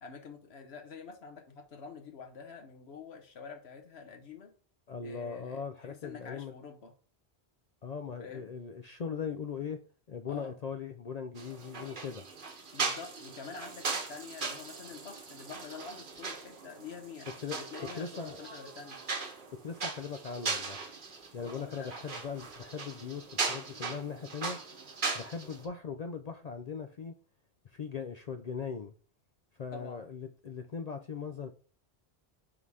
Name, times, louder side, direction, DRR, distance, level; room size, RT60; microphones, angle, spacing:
voice 1, 0.0-4.5 5.0-6.9 8.2-8.5 10.3-10.5 12.7-19.0 21.4-22.0 29.7-30.1, left 5 dB, 75° left, 5 dB, 1.3 m, -47 dB
voice 2, 4.9-6.5 7.8-9.8 10.1-12.2 17.4-17.6 18.0-18.4 19.6-20.8 21.3-24.6 25.1-27.1 27.7-28.9 29.6-31.5, left 6 dB, 55° left, 7 dB, 0.5 m, -39 dB
sound 1, 11.4-25.6, right 4 dB, 50° right, 1.2 m, -39 dB
5.5 x 3.9 x 4.7 m, 0.41 s
omnidirectional pair, 1.1 m